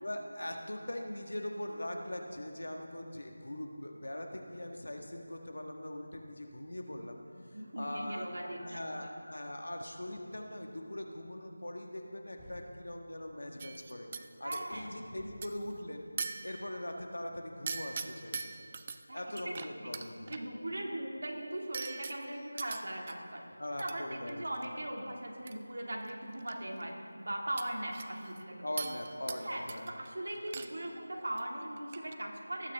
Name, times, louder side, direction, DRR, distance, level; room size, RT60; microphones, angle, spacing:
voice 1, 0.0-7.2 7.5-14.1 14.4-16.1 16.4-18.5 19.1-20.3 23.6-24.5 28.6-29.9, left 1 dB, 80° left, 3 dB, 1.6 m, -41 dB
voice 2, 7.5-8.8 14.4-14.9 19.1-19.6 20.3-23.4 23.8-28.7 29.4-32.7, right 1 dB, 65° right, 0 dB, 2.2 m, -39 dB
sound 1, 11.9-12.1 12.4-12.6 14.7-14.9 15.2-15.3, left 2 dB, 15° left, 1.7 m, -55 dB
sound 2, 13.6-14.6 15.4-15.7 16.2-16.9 17.7-19.0 19.4-20.4 21.7-23.1 23.8-24.0 24.3-24.7 25.5-25.6 25.9-26.5 26.8-26.9 27.6-28.4 28.8-29.4 29.7-30.1 30.4-30.9 31.2-31.4 31.8-32.1, right 5 dB, 25° right, 0.4 m, -42 dB
18.5 x 8.4 x 3.6 m, 2.4 s
figure-of-eight pair, 175°, 0 cm